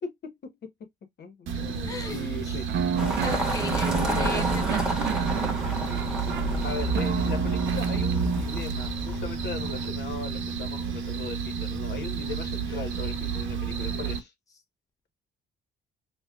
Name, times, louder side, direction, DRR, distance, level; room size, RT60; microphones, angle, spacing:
voice 1, 0.0-0.7 1.2-2.7 4.1-4.5 6.6-14.3, left 4 dB, 60° left, 1.1 m, -38 dB
sound 1, 1.5-14.2, right 6 dB, 90° right, 0.9 m, -31 dB
voice 2, 1.8-2.3 3.2-4.4 4.7-5.0 12.6-12.9, left 3 dB, 15° left, 0.7 m, -37 dB
sound 2, 2.7-8.4, right 7 dB, 60° right, 0.5 m, -30 dB
sound 3, 3.0-9.9, equal, 5° right, 1.3 m, -30 dB
4.2 x 2.2 x 2.3 m
cardioid pair, 90°, 20 cm